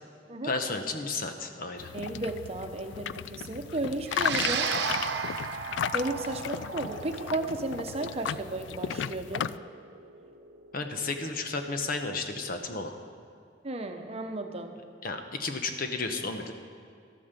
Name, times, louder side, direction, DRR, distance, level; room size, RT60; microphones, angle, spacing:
voice 1, 0.4-1.9 10.7-13.0 15.0-16.5, left 3 dB, 55° left, 6 dB, 1.0 m, -33 dB
sound 1, 1.8-9.6, left 8 dB, 85° left, 0.3 m, -35 dB
voice 2, 1.9-4.7 5.9-9.5 13.6-14.7, right 2 dB, 35° right, 5 dB, 0.9 m, -34 dB
sound 2, 4.1-12.6, right 6 dB, 70° right, 0.9 m, -36 dB
13.0 x 9.3 x 6.8 m, 2.3 s
head